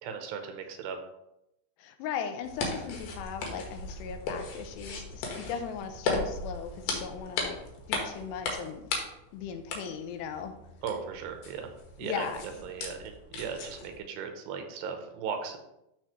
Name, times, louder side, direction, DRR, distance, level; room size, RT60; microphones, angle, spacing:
voice 1, 0.0-1.0 10.8-11.7 12.0-12.3 12.6-15.6, right 6 dB, 80° right, 6 dB, 2.9 m, -37 dB
voice 2, 1.8-7.6 7.9-8.8 9.3-10.5 12.0-12.7, left 7 dB, 85° left, 7 dB, 2.8 m, -38 dB
sound 1, 2.4-14.0, left 3 dB, 70° left, 3.1 m, -37 dB
12.5 x 4.5 x 3.1 m, 0.85 s
omnidirectional pair, 4.9 m